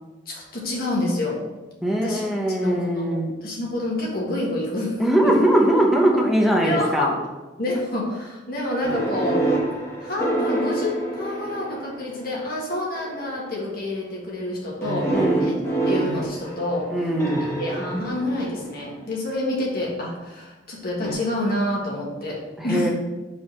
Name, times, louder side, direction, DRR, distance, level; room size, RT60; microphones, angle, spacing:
voice 1, 0.3-1.4 1.9-2.3 2.6-3.0 3.4-5.3 6.6-7.2 7.6-9.4 10.0-15.1 15.4-15.5 15.9-16.9 17.6-22.9, left 1 dB, 55° left, -3 dB, 1.8 m, -28 dB
voice 2, 1.8-3.3 5.0-7.1 15.1-15.6 16.9-17.6 22.6-22.9, right 1 dB, ahead, -1 dB, 0.9 m, -21 dB
sound 1, 8.8-12.2 12.9-13.4 14.8-18.9 21.0-21.1, right 2 dB, 15° left, 1.5 m, -27 dB
4.8 x 4.0 x 5.4 m, 1.2 s
head